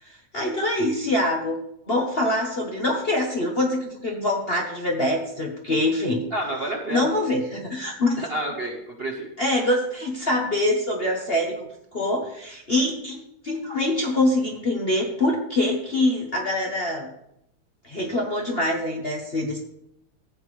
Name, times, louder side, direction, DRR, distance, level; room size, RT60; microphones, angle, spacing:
voice 1, 0.0-1.6 1.9-6.3 6.9-8.2 9.4-17.1 17.8-19.6, left 1 dB, 35° left, 0 dB, 1.0 m, -24 dB
voice 2, 6.3-7.1 8.2-9.3, right 1 dB, 40° right, 0 dB, 0.9 m, -29 dB
14.5 x 8.0 x 3.2 m, 0.79 s
omnidirectional pair, 2.3 m